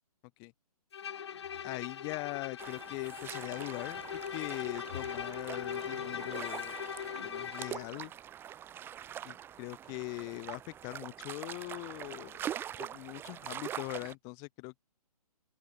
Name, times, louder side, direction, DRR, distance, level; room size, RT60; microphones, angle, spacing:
Bowed string instrument, 0.9-7.9, left 8 dB, 45° left, 0.4 m, -40 dB
voice 1, 1.6-4.0 4.3-6.8 7.2-8.1 9.2-12.4 12.8-14.8, left 34 dB, 15° left, 0.7 m, -41 dB
sound 1, 2.6-14.1, right 10 dB, 10° right, 1.4 m, -44 dB
Brass instrument, 3.5-7.7, right 13 dB, 35° right, 1.8 m, -56 dB
open air
figure-of-eight pair, 135°, 20 cm